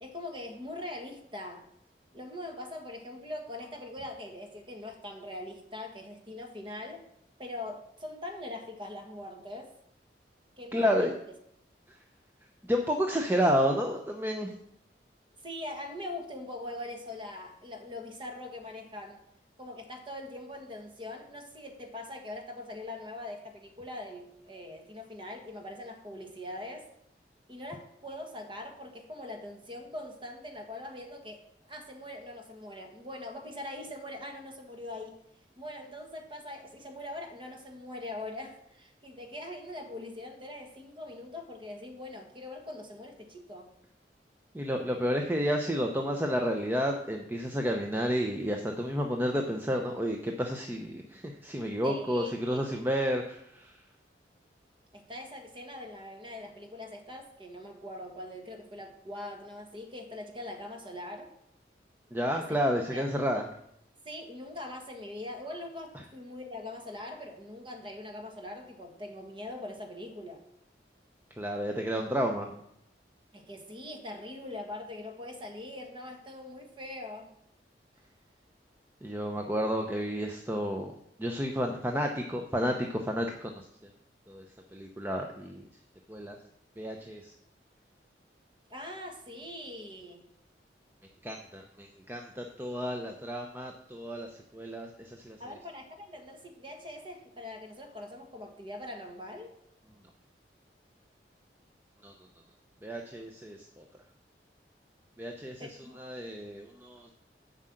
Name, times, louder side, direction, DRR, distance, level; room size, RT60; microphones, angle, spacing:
voice 1, 0.0-1.7 2.1-7.0 7.4-9.7 10.6-11.2 15.4-19.2 19.6-26.9 27.5-35.2 35.6-43.7 51.8-52.9 54.9-61.3 62.3-62.6 62.9-63.0 64.0-70.4 73.3-77.3 88.7-90.2 95.4-99.5 105.6-106.0, left 1 dB, 30° right, 3 dB, 1.4 m, -42 dB
voice 2, 10.7-11.1 11.9-12.0 12.6-14.6 44.5-53.8 62.1-63.4 71.4-72.5 79.0-80.9 81.2-83.7 84.3-84.4 84.7-85.6 86.1-86.4 86.8-87.3 91.2-95.4 102.0-102.1 102.8-103.8 105.2-105.7 106.0-107.1, equal, 10° right, 2 dB, 0.6 m, -31 dB
7.5 x 5.5 x 7.6 m, 0.74 s
head